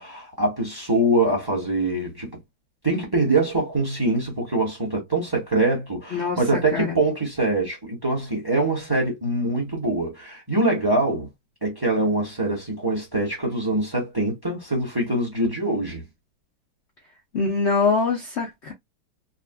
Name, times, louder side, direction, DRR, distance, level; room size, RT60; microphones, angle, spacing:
voice 1, 0.0-2.3 2.8-11.3 11.6-16.0, right 2 dB, 15° right, 0.9 m, -24 dB
voice 2, 17.3-18.7, left 4 dB, 75° left, 0.6 m, -23 dB
3.9 x 2.4 x 2.2 m
omnidirectional pair, 2.1 m